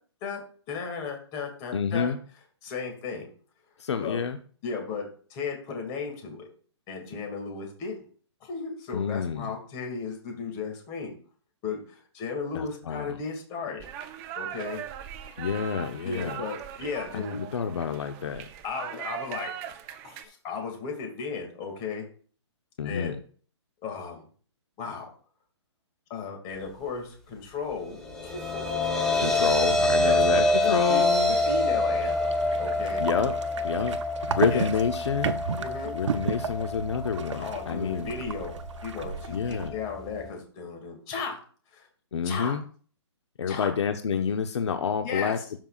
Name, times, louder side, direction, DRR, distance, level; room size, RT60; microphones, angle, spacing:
voice 1, 0.7-2.1 2.6-3.3 4.0-4.2 4.6-5.1 5.3-6.5 6.9-7.9 8.4-11.1 11.6-13.8 14.4-14.8 16.0-17.4 18.6-19.5 20.0-22.0 22.8-23.1 23.8-24.2 24.8-25.1 26.1-29.3 30.0-31.0 31.3-32.1 32.6-33.0 34.5-34.7 35.6-35.9 37.4-38.6 38.8-41.4 41.7-41.9 42.2-42.5 43.5-43.7 45.0-45.4, left 5 dB, 25° left, 2 dB, 2.1 m, -35 dB
voice 2, 1.7-2.2 3.8-4.4 8.9-9.5 12.5-13.2 15.4-16.4 17.1-18.5 22.8-23.2 29.2-31.4 33.0-33.4 33.6-34.0 34.3-35.4 35.9-38.1 39.3-39.7 42.1-42.6 43.4-45.4, left 6 dB, 70° left, 8 dB, 0.7 m, -28 dB
sound 1, 13.8-20.2, right 10 dB, 15° right, 0.4 m, -39 dB
sound 2, 27.9-40.3, left 1 dB, 5° left, 1.0 m, -27 dB
sound 3, 31.9-39.7, right 6 dB, 80° right, 0.7 m, -34 dB
12.5 x 5.5 x 2.4 m, 0.43 s
hypercardioid pair, 155°, 15 cm